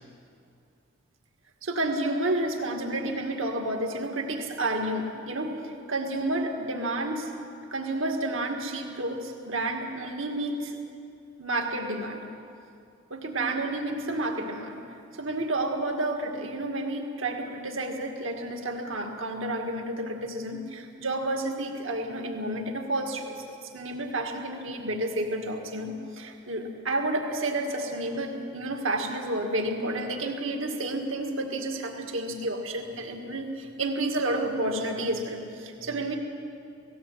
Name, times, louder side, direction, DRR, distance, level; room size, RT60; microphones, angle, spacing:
voice 1, 1.6-7.3 7.7-10.8 11.4-12.3 13.1-14.9 15.1-36.2, right 1 dB, 70° right, 3 dB, 2.1 m, -30 dB
18.0 x 16.5 x 8.7 m, 2.5 s
head